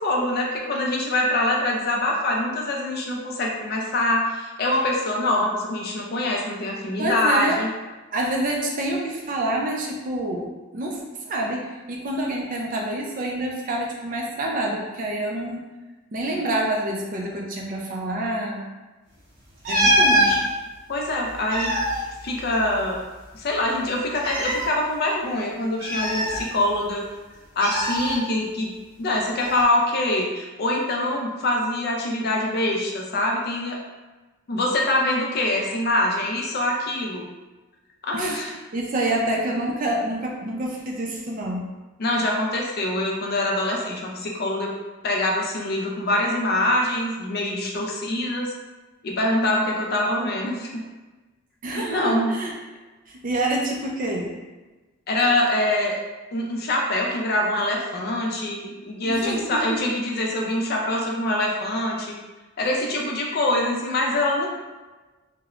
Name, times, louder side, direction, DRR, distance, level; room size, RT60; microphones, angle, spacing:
voice 1, 0.0-7.7 20.9-21.8 22.2-23.0 23.3-27.2 27.6-28.7 29.0-33.8 34.5-37.3 38.0-38.6 42.0-44.7 45.0-48.5 49.0-50.8 51.7-52.4 55.1-56.0 56.3-62.1 62.6-64.5, left 1 dB, 45° left, 0 dB, 0.4 m, -24 dB
voice 2, 7.0-7.6 8.1-10.5 10.7-15.7 16.1-18.7 19.7-20.4 38.1-38.4 38.7-41.7 51.6-52.5 53.1-54.3 59.0-59.8, right 1 dB, 40° right, -1 dB, 0.4 m, -27 dB
sound 1, 19.6-20.4 21.3-23.0 23.2-23.3 24.2-24.7 25.8-26.9 27.6-28.2 29.4-29.6, equal, 60° right, 0.9 m, -23 dB
3.0 x 2.0 x 2.4 m, 1.2 s
head